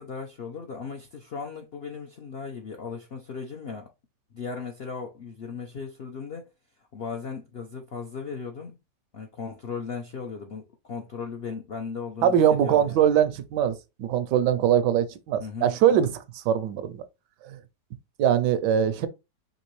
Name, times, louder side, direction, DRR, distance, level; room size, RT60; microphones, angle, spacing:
voice 1, 0.0-3.9 4.3-6.5 6.8-8.8 9.1-12.3 12.6-13.0 15.4-15.7, left 5 dB, 70° left, 0.5 m, -37 dB
voice 2, 12.2-17.0 17.4-17.6 18.2-19.1, right 9 dB, 80° right, 1.2 m, -22 dB
5.1 x 3.0 x 3.1 m
omnidirectional pair, 1.9 m